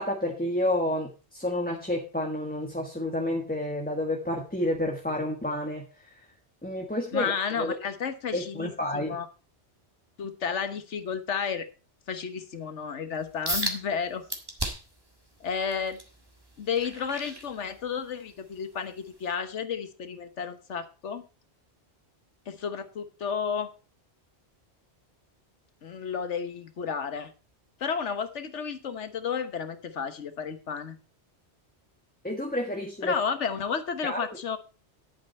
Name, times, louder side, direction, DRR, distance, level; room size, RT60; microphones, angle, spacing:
voice 1, 0.0-6.2 6.6-7.7 8.3-9.2 32.2-33.1 34.0-34.3, left 1 dB, 10° left, 1 dB, 1.3 m, -30 dB
voice 2, 7.1-9.3 10.2-11.7 12.1-14.2 15.4-16.0 16.6-21.2 22.5-23.7 25.8-27.3 27.8-31.0 33.0-34.6, left 6 dB, 90° left, 10 dB, 1.4 m, -32 dB
sound 1, 13.5-13.8 14.3-15.0 15.5-18.1 18.5-18.8 19.3-19.4, right 1 dB, 20° right, 1.8 m, -34 dB
11.0 x 8.7 x 4.3 m, 0.33 s
omnidirectional pair, 1.2 m